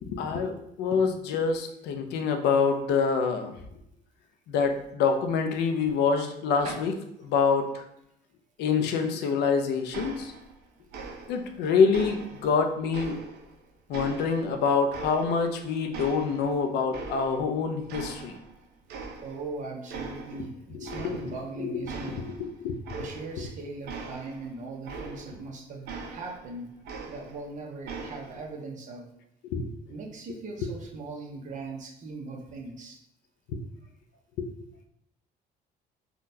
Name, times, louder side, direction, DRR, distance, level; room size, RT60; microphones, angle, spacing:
voice 1, 0.1-3.5 4.5-6.9 7.2-7.8 8.6-10.3 11.3-13.2 13.9-18.4 20.3-20.4 20.7-22.7 23.4-23.5 29.4-29.6 33.5-33.6 34.4-34.5, left 5 dB, 80° left, 5 dB, 0.5 m, -26 dB
sound 1, 9.9-10.6 10.9-11.5 11.9-13.5 13.9-15.6 15.9-17.5 17.9-18.6 18.9-19.5 19.9-20.5 20.8-21.5 21.8-25.5 25.9-27.5 27.8-28.5, right 4 dB, 75° right, 0.5 m, -41 dB
voice 2, 19.2-22.2 22.9-29.0 29.9-33.0, right 3 dB, 50° right, 0 dB, 0.8 m, -39 dB
3.8 x 2.2 x 2.6 m, 0.77 s
cardioid pair, 110°, 17 cm